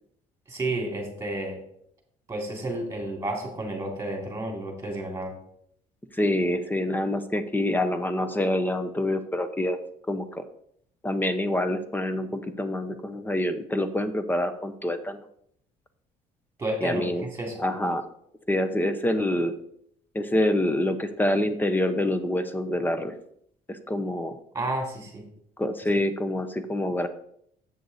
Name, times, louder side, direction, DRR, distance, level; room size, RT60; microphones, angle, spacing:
voice 1, 0.5-1.6 2.3-5.3 16.6-17.5 24.5-25.2, right 1 dB, 15° right, 1 dB, 2.7 m, -31 dB
voice 2, 6.1-9.8 10.1-10.4 11.0-15.2 16.8-17.2 17.6-18.1 18.5-19.5 20.1-23.1 23.7-24.4 25.6-27.1, left 1 dB, 10° left, 10 dB, 0.8 m, -26 dB
7.8 x 6.6 x 4.1 m, 0.70 s
cardioid pair, 115°, 16 cm